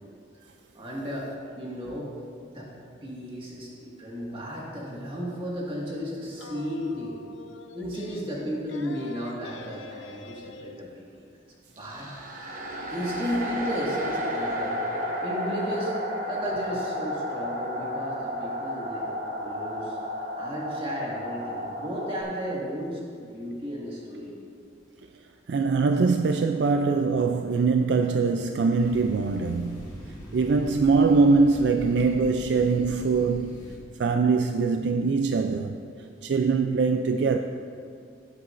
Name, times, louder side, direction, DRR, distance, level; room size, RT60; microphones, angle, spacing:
voice 1, 0.7-1.3 1.6-2.1 2.5-2.7 3.0-7.2 7.7-11.0 11.8-12.1 12.9-14.7 15.2-15.9 16.3-24.3, equal, 30° right, 1.8 m, -34 dB
sound 1, 6.4-10.8, left 3 dB, 85° left, 0.6 m, -45 dB
sound 2, 11.8-22.2, equal, 45° right, 1.0 m, -32 dB
voice 2, 25.5-29.9 30.3-33.6 34.0-35.8 36.2-37.4, right 4 dB, 65° right, 0.3 m, -23 dB
sound 3, 28.8-33.8, equal, 20° left, 1.6 m, -42 dB
15.0 x 8.0 x 2.6 m
head